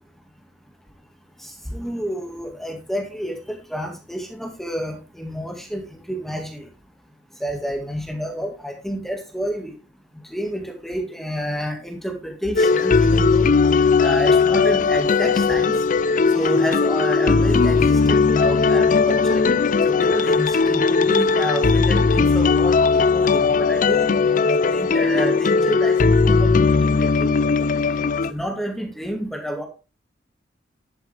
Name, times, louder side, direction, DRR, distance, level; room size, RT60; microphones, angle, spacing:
voice 1, 1.4-6.7 7.4-9.7 10.3-13.5 14.0-15.7 16.3-19.5 19.9-22.7 23.1-26.5 27.0-27.3 27.6-27.7 28.3-29.7, equal, ahead, 3 dB, 1.9 m, -29 dB
sound 1, 12.6-28.3, left 4 dB, 45° left, 0.5 m, -18 dB
11.5 x 8.1 x 3.4 m, 0.32 s
head